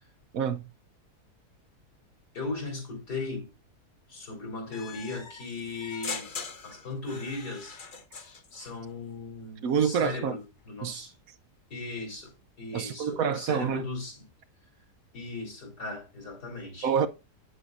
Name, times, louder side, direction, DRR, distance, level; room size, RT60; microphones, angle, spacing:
voice 1, 0.3-0.7 9.6-10.3 10.8-11.1 12.7-13.8 16.8-17.1, right 7 dB, 65° right, 1.0 m, -27 dB
voice 2, 2.3-3.5 4.1-6.3 6.6-7.8 8.5-11.2 11.7-14.2 15.1-16.9, left 3 dB, 80° left, 4.5 m, -37 dB
sound 1, 4.7-8.7, left 5 dB, 35° left, 0.9 m, -41 dB
9.3 x 7.8 x 2.4 m
omnidirectional pair, 1.7 m